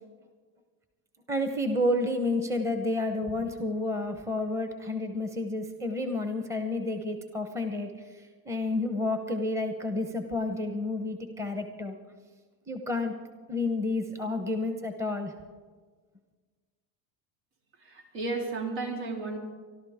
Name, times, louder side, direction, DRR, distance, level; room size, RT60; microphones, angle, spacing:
voice 1, 1.3-7.9 8.5-12.0 12.7-13.1 13.5-15.3, left 2 dB, 5° right, 6 dB, 1.0 m, -30 dB
voice 2, 17.8-19.4, right 3 dB, 70° right, 0 dB, 4.0 m, -33 dB
25.5 x 12.0 x 3.6 m, 1.5 s
cardioid pair, 140°, 44 cm